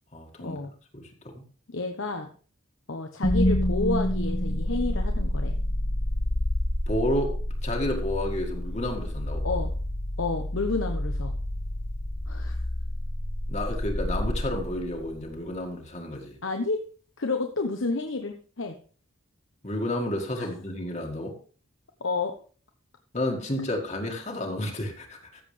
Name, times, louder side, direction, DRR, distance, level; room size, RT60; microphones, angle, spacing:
voice 1, 0.1-0.6 0.9-1.4 6.9-7.4 7.6-9.4 13.5-16.4 19.6-21.4 23.1-25.4, left 1 dB, 35° left, 2 dB, 1.9 m, -31 dB
voice 2, 1.7-2.3 2.9-5.5 9.4-9.7 10.2-11.3 12.3-12.6 16.4-16.8 17.2-18.8 20.4-20.5 22.0-22.3, left 3 dB, 70° left, 5 dB, 1.0 m, -30 dB
sound 1, 3.2-15.3, left 1 dB, 50° left, 1.4 m, -28 dB
14.0 x 7.4 x 3.3 m, 0.41 s
head